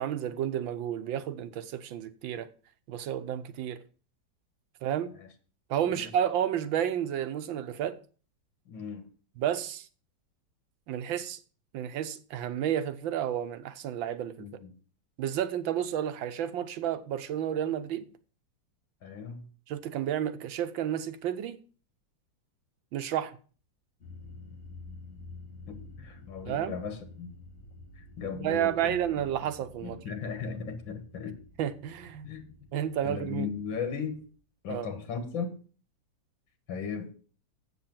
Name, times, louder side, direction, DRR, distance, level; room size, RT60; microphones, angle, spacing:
voice 1, 0.0-2.5 2.9-3.8 4.8-5.1 5.7-8.0 9.4-9.9 10.9-11.4 11.7-14.4 15.2-18.1 19.7-21.6 22.9-23.4 26.5-26.8 28.4-30.0 31.6-32.3 32.7-33.5 34.7-34.9, right 10 dB, 85° right, 1.6 m, -31 dB
voice 2, 8.7-9.1 14.4-14.7 19.0-19.5 25.7-27.4 28.0-29.3 29.8-31.4 32.2-32.5 33.0-34.3 34.6-35.6 36.7-37.2, left 6 dB, 85° left, 2.2 m, -37 dB
sound 1, 24.0-34.3, left 3 dB, 35° left, 2.4 m, -50 dB
8.1 x 6.7 x 7.5 m
omnidirectional pair, 2.1 m